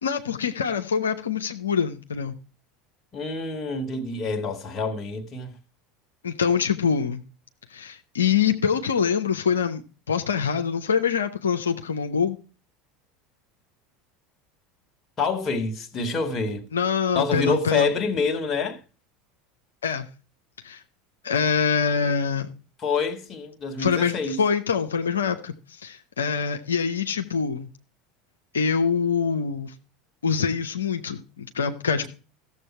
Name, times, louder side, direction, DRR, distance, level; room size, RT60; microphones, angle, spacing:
voice 1, 0.0-2.3 6.2-7.2 7.7-9.8 10.1-12.4 16.7-17.9 19.8-20.1 20.6-20.8 21.2-22.5 23.8-27.7 28.5-29.7 30.2-32.1, left 6 dB, 85° left, 0.8 m, -24 dB
voice 2, 3.1-5.6 15.2-16.6 17.1-18.8 22.8-24.4 32.0-32.1, left 4 dB, 35° left, 1.9 m, -27 dB
14.5 x 7.3 x 4.3 m
hypercardioid pair, 80°, 0 cm